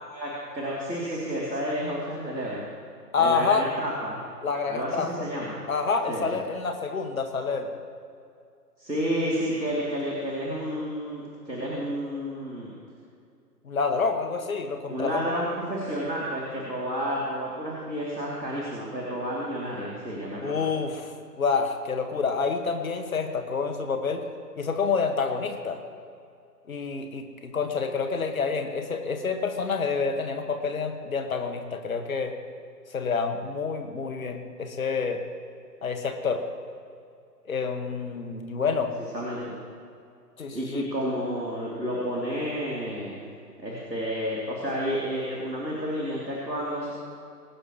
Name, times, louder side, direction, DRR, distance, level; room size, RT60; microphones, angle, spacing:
voice 1, 0.0-2.7 3.2-4.2 4.7-5.6 6.1-6.4 8.8-12.7 14.9-20.7 39.1-39.6 40.5-43.2 43.6-46.9, equal, 90° right, -5 dB, 3.3 m, -31 dB
voice 2, 3.1-3.7 4.4-5.1 5.7-7.7 13.7-15.2 20.4-24.2 24.6-25.8 26.7-32.3 32.9-35.2 35.8-36.4 37.5-38.9 40.4-40.8, left 5 dB, 55° left, 5 dB, 1.8 m, -28 dB
25.0 x 11.0 x 3.1 m, 2.4 s
figure-of-eight pair, 135°, 49 cm